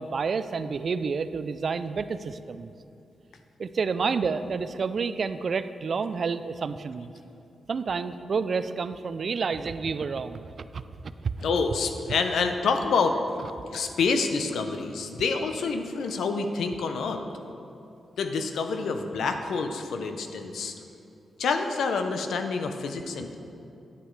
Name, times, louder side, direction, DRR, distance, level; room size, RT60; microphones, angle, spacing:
voice 1, 0.0-2.7 3.6-7.1 7.7-10.8 11.2-11.3, right 5 dB, 60° right, 12 dB, 0.3 m, -29 dB
voice 2, 11.4-13.2 13.7-17.2 18.2-20.7 21.4-23.4, left 4 dB, 85° left, 6 dB, 0.6 m, -27 dB
9.8 x 9.1 x 3.2 m, 2.7 s
cardioid pair, 80°, 0 cm